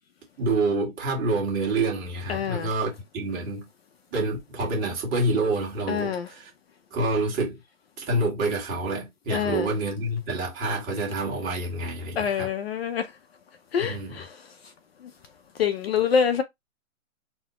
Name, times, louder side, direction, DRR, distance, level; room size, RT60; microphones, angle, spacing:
voice 1, 0.4-3.6 4.1-6.5 6.9-7.6 8.0-12.5 13.8-14.2, right 2 dB, 20° right, 1.5 m, -27 dB
voice 2, 2.3-2.7 5.9-6.3 9.3-9.7 12.2-13.1 13.7-14.3 15.6-16.4, left 7 dB, 50° left, 0.5 m, -25 dB
4.1 x 2.1 x 2.9 m
hypercardioid pair, 135°, 40 cm